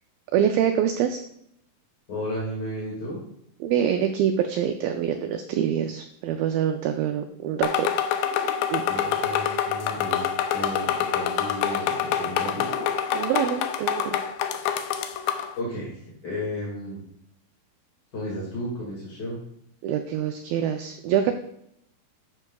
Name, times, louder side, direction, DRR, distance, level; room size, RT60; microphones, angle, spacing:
voice 1, 0.3-1.2 3.6-7.9 8.7-8.8 11.7-11.8 13.1-14.2 19.8-21.3, right 9 dB, 85° right, 6 dB, 2.0 m, -25 dB
voice 2, 2.1-3.2 8.8-12.8 15.6-17.0 18.1-19.4, equal, 40° left, -5 dB, 1.6 m, -33 dB
sound 1, 7.6-15.5, left 9 dB, 85° left, 2.1 m, -26 dB
11.5 x 6.5 x 2.3 m, 0.74 s
omnidirectional pair, 4.6 m